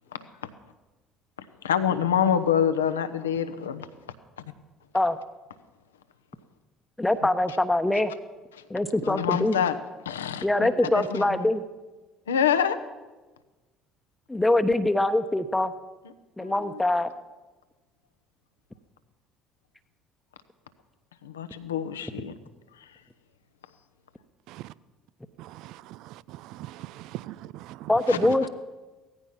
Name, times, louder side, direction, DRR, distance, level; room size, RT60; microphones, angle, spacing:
voice 1, 1.6-3.9 8.6-8.7 9.0-9.8 10.0-11.4 12.3-12.8 16.4-16.8 21.2-22.3 28.1-28.2, left 8 dB, 80° left, 0.9 m, -26 dB
voice 2, 7.0-8.1 8.7-9.6 10.4-11.6 14.3-15.7 16.4-17.1 27.9-28.5, left 1 dB, 10° left, 1.0 m, -23 dB
voice 3, 25.4-26.0 26.3-27.9, right 15 dB, 60° right, 0.5 m, -41 dB
17.0 x 14.0 x 5.9 m
figure-of-eight pair, 60°, 0 cm